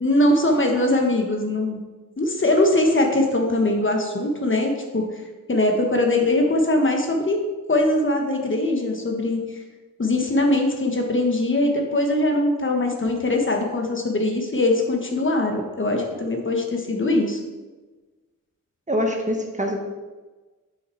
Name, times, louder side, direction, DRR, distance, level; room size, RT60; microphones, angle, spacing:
voice 1, 0.0-1.8 2.2-5.0 5.5-7.4 7.7-9.4 10.0-17.4, left 1 dB, 35° left, 2 dB, 1.2 m, -21 dB
voice 2, 18.9-19.8, equal, 20° right, 2 dB, 1.1 m, -24 dB
6.5 x 5.5 x 4.5 m, 1.3 s
wide cardioid pair, 85°, 34 cm